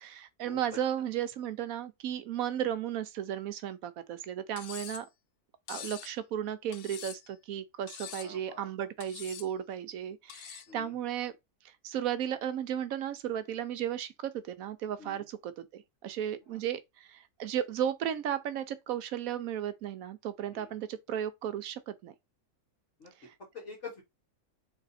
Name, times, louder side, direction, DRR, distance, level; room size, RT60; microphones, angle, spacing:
voice 1, 0.0-5.1 5.7-11.3 11.6-22.1 23.2-23.3, right 10 dB, 70° right, 1.0 m, -35 dB
Cutlery silverware, 4.6-5.1 5.7-6.1 6.7-7.3 7.9-8.4 9.0-9.5 10.3-10.7, left 10 dB, 75° left, 1.1 m, -44 dB
voice 2, 8.1-8.7 10.7-11.0 15.0-15.2 20.5-20.7 23.0-23.1 23.5-24.0, left 4 dB, 55° left, 1.7 m, -46 dB
3.7 x 3.4 x 4.0 m
omnidirectional pair, 1.6 m